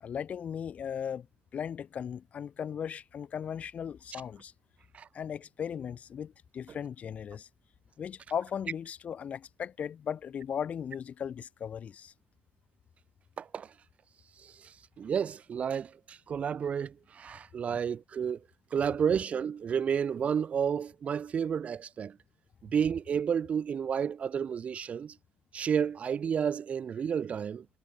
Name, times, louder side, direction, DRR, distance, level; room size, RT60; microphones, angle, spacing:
voice 1, 0.0-1.3 1.5-4.5 5.1-7.5 8.0-12.1, left 8 dB, 45° left, 0.6 m, -37 dB
voice 2, 13.4-13.7 14.4-18.4 18.7-22.2 22.6-25.2 25.5-27.7, right 7 dB, 45° right, 0.6 m, -31 dB
cardioid pair, 95°, 3 cm